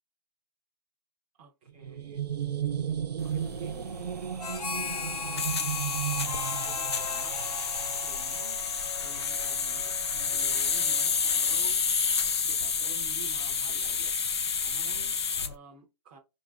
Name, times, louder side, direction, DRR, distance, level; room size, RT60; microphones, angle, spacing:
voice 1, 1.4-2.2 3.2-3.9 4.5-5.6 6.2-7.4 7.9-8.7 8.9-11.8 12.4-14.1 14.6-16.2, right 4 dB, 15° right, 0.6 m, -50 dB
sound 1, 1.7-8.7, right 9 dB, 75° right, 0.4 m, -35 dB
sound 2, 3.2-15.5, left 6 dB, 40° left, 0.4 m, -30 dB
Harmonica, 4.4-12.1, left 6 dB, 70° left, 0.8 m, -39 dB
4.7 x 2.5 x 3.4 m
figure-of-eight pair, 160°, 21 cm